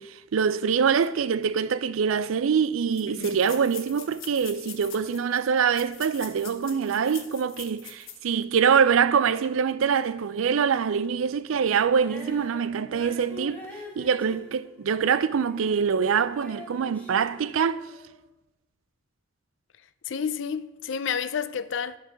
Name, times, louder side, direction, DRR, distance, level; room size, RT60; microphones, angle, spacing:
voice 1, 0.0-13.7 14.0-17.9, right 6 dB, 90° right, 0.4 m, -24 dB
sound 1, 1.8-1.9 2.1-2.2 2.9-8.3 8.7-8.8 9.3-9.5, left 8 dB, 85° left, 1.2 m, -43 dB
voice 2, 3.1-3.4 20.1-22.0, left 7 dB, 65° left, 0.4 m, -30 dB
Female singing, 12.0-15.8 16.1-18.2, left 2 dB, 10° left, 1.5 m, -45 dB
10.5 x 5.4 x 6.1 m
head